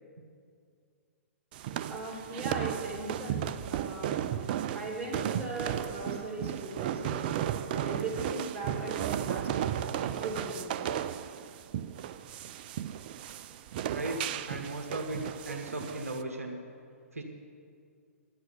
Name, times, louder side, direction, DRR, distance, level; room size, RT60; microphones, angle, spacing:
sound 1, 1.5-16.2, right 10 dB, 40° right, 0.4 m, -35 dB
voice 1, 1.9-3.4 3.7-4.4 4.7-7.4 7.7-9.5 10.0-10.5, right 2 dB, 15° right, -2 dB, 3.0 m, -38 dB
voice 2, 13.9-14.2 14.5-15.2 15.4-16.6 17.1-17.2, right 2 dB, 75° right, 2 dB, 1.3 m, -36 dB
10.5 x 7.6 x 9.6 m, 2.3 s
figure-of-eight pair, 115°, 8 cm